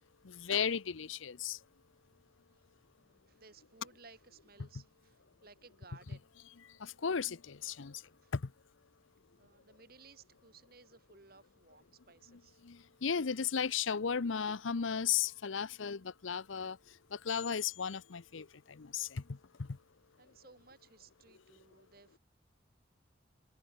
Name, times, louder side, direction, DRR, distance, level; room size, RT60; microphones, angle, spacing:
voice 1, 0.2-1.6 6.8-8.0 8.3-8.4 12.6-16.8 17.1-19.7, left 7 dB, 85° left, 0.7 m, -35 dB
voice 2, 3.0-6.3 8.2-8.3 9.4-12.6 19.7-19.8 20.2-22.2, right 4 dB, 50° right, 2.5 m, -60 dB
head